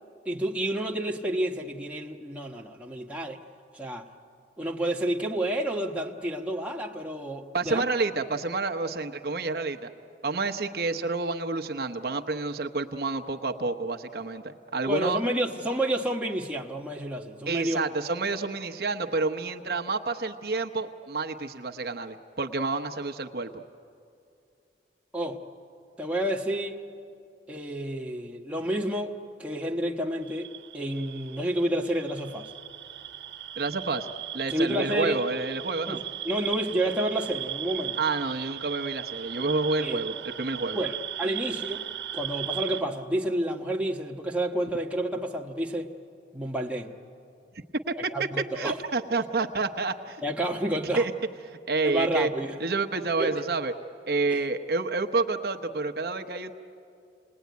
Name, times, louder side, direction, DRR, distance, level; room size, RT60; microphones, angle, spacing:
voice 1, 0.2-3.4 3.7-4.1 4.6-7.8 14.9-17.8 25.1-25.4 26.0-26.8 27.5-32.5 34.5-35.2 35.9-38.0 39.8-40.1 40.7-41.9 42.1-45.9 46.3-46.9 48.1-48.8 50.2-51.1 51.8-52.6 53.2-53.4 54.3-54.4, right 1 dB, 5° right, -1 dB, 1.2 m, -30 dB
voice 2, 7.5-9.9 10.2-15.2 17.5-23.5 33.6-34.1 34.3-36.0 38.0-40.8 47.5-48.3 48.6-50.2 50.7-51.1 51.7-52.3 52.6-53.7 54.1-56.5, right 3 dB, 60° right, 5 dB, 0.9 m, -29 dB
sound 1, 30.2-42.8, right 12 dB, 85° right, 1.3 m, -37 dB
28.5 x 20.0 x 9.4 m, 2.5 s
head